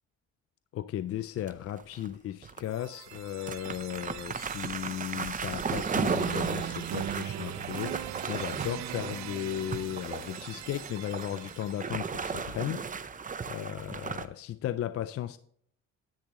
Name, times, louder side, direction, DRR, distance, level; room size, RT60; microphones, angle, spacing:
voice 1, 0.7-13.1 13.5-15.4, left 11 dB, 50° left, 0.4 m, -36 dB
sound 1, 1.4-2.1 2.4-2.6 3.1-3.2 3.5-14.3, right 5 dB, 25° right, 0.7 m, -35 dB
sound 2, 2.6-12.6, right 13 dB, 65° right, 0.5 m, -41 dB
10.5 x 9.2 x 3.0 m
cardioid pair, 90°, 30 cm